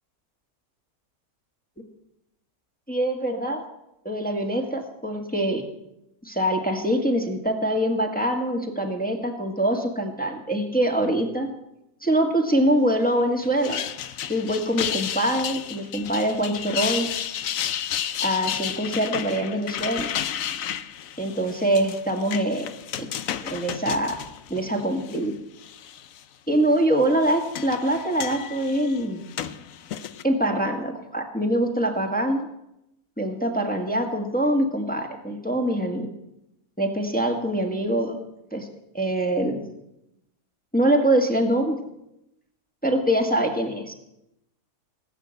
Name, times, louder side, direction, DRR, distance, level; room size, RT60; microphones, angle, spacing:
voice 1, 2.9-3.6 4.0-5.6 6.2-11.5 12.0-13.8 14.3-17.1 18.2-20.1 21.2-22.7 23.0-23.1 23.4-24.1 24.5-25.4 26.5-29.2 30.2-32.5 33.2-36.1 36.8-38.1 38.5-38.7 38.9-39.6 40.7-41.8 42.8-43.9, right 1 dB, 5° left, 3 dB, 1.7 m, -24 dB
sound 1, 13.4-25.2 25.6-26.2 27.0-30.2, left 10 dB, 65° left, 1.1 m, -32 dB
19.0 x 8.9 x 7.8 m, 0.85 s
omnidirectional pair, 1.6 m